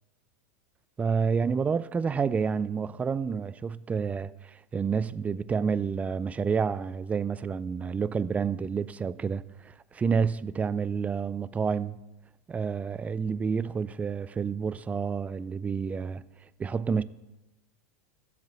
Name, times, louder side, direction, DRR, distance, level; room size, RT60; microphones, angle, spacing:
voice 1, 1.0-12.0 12.5-16.2 16.6-17.0, right 6 dB, 15° right, 0.3 m, -29 dB
7.7 x 7.3 x 7.5 m
hypercardioid pair, 105°, 9 cm